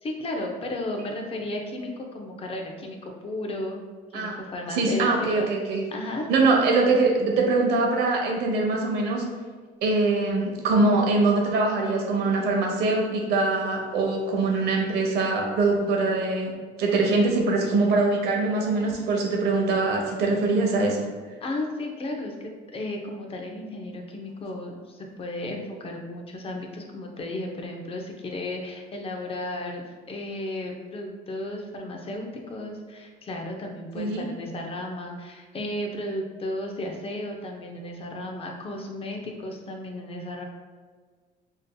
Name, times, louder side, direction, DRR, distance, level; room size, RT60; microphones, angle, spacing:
voice 1, 0.0-3.8 4.1-5.5 5.9-6.3 21.4-40.4, left 1 dB, 35° left, 2 dB, 0.7 m, -34 dB
voice 2, 4.7-5.8 6.3-9.3 9.8-16.5 16.8-21.0 34.0-34.3, right 3 dB, 80° right, 0 dB, 0.9 m, -23 dB
5.0 x 2.7 x 2.2 m, 1.5 s
cardioid pair, 110°, 17 cm